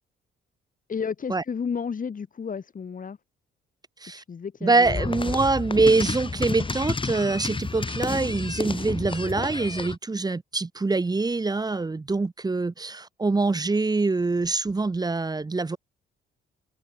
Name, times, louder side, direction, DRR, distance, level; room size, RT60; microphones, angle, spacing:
voice 1, 0.9-3.2 4.1-5.3, left 6 dB, 45° left, 6.6 m, -32 dB
voice 2, 4.6-15.8, right 3 dB, 20° right, 1.3 m, -24 dB
sound 1, 4.8-10.0, left 3 dB, 25° left, 7.2 m, -31 dB
open air
cardioid pair, 90°, 20 cm